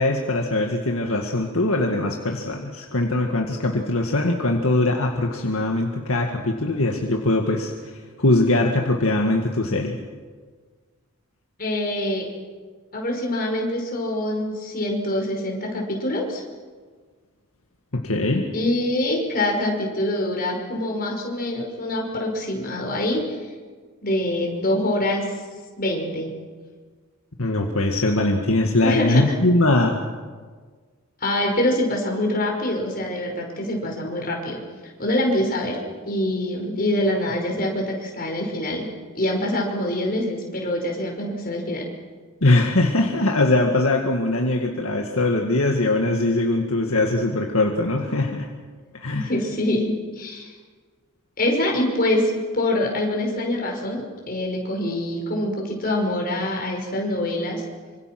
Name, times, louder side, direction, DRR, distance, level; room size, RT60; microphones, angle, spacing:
voice 1, 0.0-7.7 8.2-10.0 17.9-18.5 27.4-30.0 42.4-48.5 49.0-49.3, left 2 dB, 70° left, 1 dB, 2.0 m, -21 dB
voice 2, 11.6-12.3 12.9-16.4 18.5-23.5 24.0-25.2 25.8-26.3 28.8-29.4 31.2-34.6 35.0-35.8 36.1-38.9 39.1-41.8 49.1-50.5 51.4-57.6, left 1 dB, 40° left, 0 dB, 5.5 m, -25 dB
26.5 x 25.5 x 6.2 m, 1.5 s
head